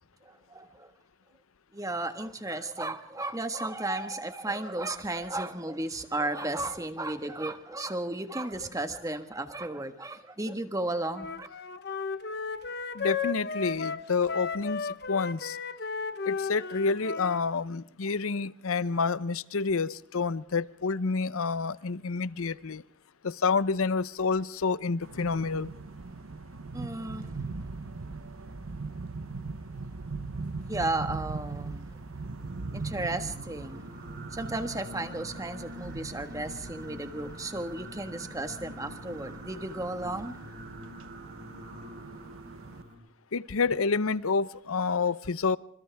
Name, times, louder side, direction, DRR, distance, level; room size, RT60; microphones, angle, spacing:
voice 1, 0.2-0.9 1.7-11.5 26.7-27.4 30.7-31.9 32.7-33.9 34.3-40.4, right 2 dB, 15° right, 1.5 m, -34 dB
Wind instrument woodwind instrument, 11.1-17.4, left 5 dB, 50° left, 1.0 m, -34 dB
voice 2, 12.9-15.6 16.3-22.8 23.2-25.7 43.3-45.6, left 4 dB, 85° left, 0.8 m, -28 dB
sound 1, 25.0-42.8, right 3 dB, 80° right, 0.8 m, -41 dB
Singing, 32.2-42.9, equal, 50° right, 6.7 m, -46 dB
28.0 x 26.5 x 3.5 m
head